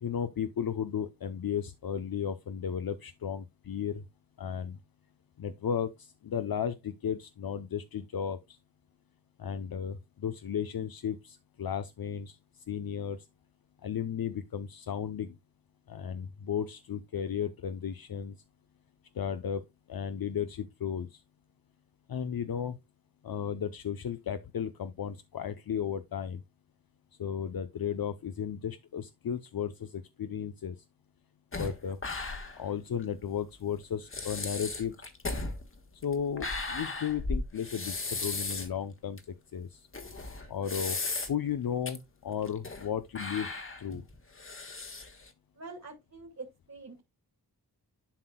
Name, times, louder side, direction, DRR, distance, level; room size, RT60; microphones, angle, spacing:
voice 1, 0.0-4.0 4.4-4.8 5.4-8.6 9.4-13.3 13.8-15.3 15.9-18.4 19.1-21.2 22.1-22.8 23.2-26.4 27.2-30.7 31.5-32.0 32.6-35.0 36.0-39.9 40.5-41.0 41.3-43.5 43.8-44.0, left 8 dB, 65° left, 0.7 m, -34 dB
sound 1, 31.5-32.7 33.0-33.1 33.7-33.8 34.1-38.8 39.2-39.3 39.9-41.5 41.9-42.0 42.4-42.9 43.1-45.3, left 3 dB, 35° left, 1.5 m, -36 dB
voice 2, 45.5-47.0, right 3 dB, 45° right, 2.3 m, -45 dB
11.5 x 5.9 x 2.2 m
wide cardioid pair, 115°, 39 cm